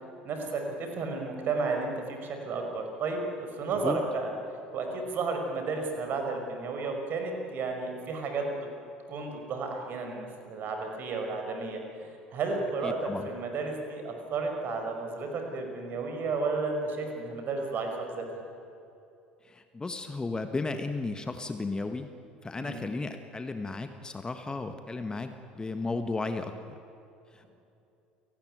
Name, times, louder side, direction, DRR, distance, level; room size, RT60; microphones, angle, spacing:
voice 1, 0.2-4.3 4.7-8.6 9.1-11.8 12.3-18.4 22.6-22.9, right 3 dB, 45° right, 3 dB, 5.6 m, -32 dB
voice 2, 12.8-13.3 19.4-22.1 22.4-26.7 27.3-27.5, left 3 dB, 15° left, 8 dB, 1.6 m, -34 dB
29.5 x 18.5 x 9.2 m, 2.8 s
figure-of-eight pair, 65°, 5 cm